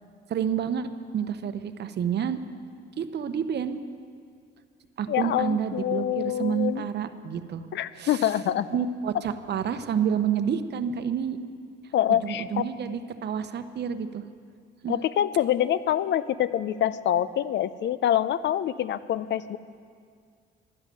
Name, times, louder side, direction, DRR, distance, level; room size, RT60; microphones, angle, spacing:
voice 1, 0.3-2.4 3.0-3.8 5.0-7.6 8.0-8.3 8.7-11.4 12.2-14.3 14.8-14.9, right 8 dB, 60° right, 11 dB, 0.8 m, -29 dB
voice 2, 5.1-6.8 7.7-8.7 11.9-12.6 14.9-19.6, left 11 dB, 65° left, 16 dB, 0.5 m, -25 dB
12.0 x 10.5 x 7.6 m, 2.1 s
cardioid pair, 90°, 20 cm